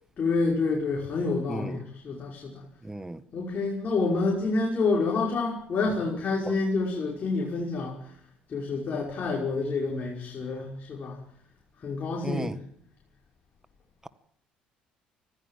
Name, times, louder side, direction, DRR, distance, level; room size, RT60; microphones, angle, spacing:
voice 1, 0.2-2.6 3.3-8.0 8.5-11.2 11.8-12.5, left 3 dB, 45° left, 5.5 m, -28 dB
voice 2, 2.8-3.2 6.5-6.6 12.2-12.6, right 2 dB, 15° right, 1.7 m, -34 dB
24.5 x 16.5 x 7.6 m
hypercardioid pair, 55°, 4 cm